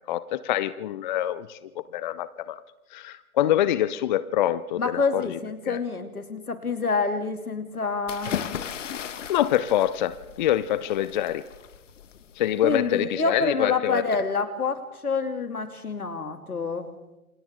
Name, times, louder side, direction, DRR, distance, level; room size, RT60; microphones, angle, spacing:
voice 1, 0.1-1.6 1.9-2.6 2.9-5.4 5.7-5.8 9.3-11.4 12.4-14.1, left 12 dB, 35° left, 16 dB, 0.7 m, -25 dB
voice 2, 4.8-8.4 12.6-16.9, left 4 dB, 80° left, 6 dB, 2.9 m, -27 dB
sound 1, 8.1-12.9, left 8 dB, 55° left, 1.6 m, -37 dB
28.0 x 28.0 x 3.7 m, 1.0 s
figure-of-eight pair, 125°, 43 cm